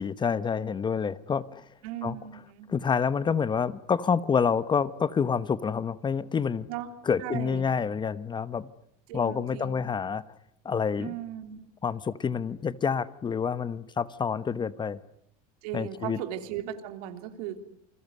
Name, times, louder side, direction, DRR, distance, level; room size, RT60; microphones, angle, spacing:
voice 1, 0.0-1.6 2.0-2.2 2.7-6.7 7.1-8.7 9.1-10.2 10.6-11.1 11.8-15.0 15.7-16.2, left 6 dB, 25° left, 16 dB, 1.1 m, -28 dB
voice 2, 1.8-2.7 6.7-6.9 7.2-7.7 9.1-9.9 11.0-11.6 15.6-17.6, right 11 dB, 80° right, 8 dB, 3.3 m, -37 dB
29.0 x 21.0 x 9.5 m, 0.71 s
supercardioid pair, 120°, 19 cm